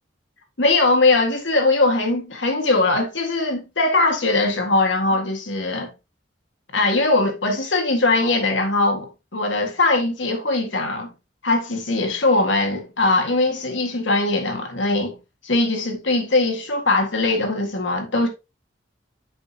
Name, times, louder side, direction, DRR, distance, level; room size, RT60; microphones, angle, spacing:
voice 1, 0.6-5.9 6.7-9.1 9.3-11.1 11.4-15.2 15.4-18.3, left 2 dB, 80° left, 1.9 m, -20 dB
7.7 x 5.5 x 2.8 m
head